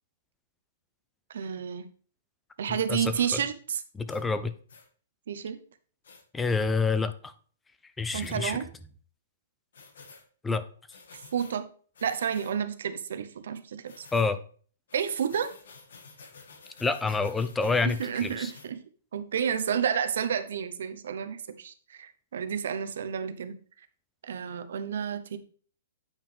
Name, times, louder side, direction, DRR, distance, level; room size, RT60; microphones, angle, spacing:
voice 1, 1.3-1.9 2.6-3.8 5.3-5.6 8.1-8.7 11.3-11.7 12.0-14.0 14.9-15.5 17.8-18.8 19.1-23.6 24.2-25.4, right 8 dB, 65° right, 10 dB, 0.8 m, -30 dB
voice 2, 2.7-3.4 4.0-4.5 6.3-7.3 8.0-8.6 10.4-10.6 14.1-14.4 16.8-18.5, left 4 dB, 5° left, 12 dB, 0.4 m, -28 dB
sound 1, 4.1-4.2 4.7-4.9 6.0-6.2 8.1-8.4 9.7-10.2 10.9-11.5 11.9-12.5 13.9-14.3 14.9-18.7, left 4 dB, 75° left, 1.6 m, -51 dB
8.9 x 5.5 x 3.4 m, 0.43 s
hypercardioid pair, 175°, 0 cm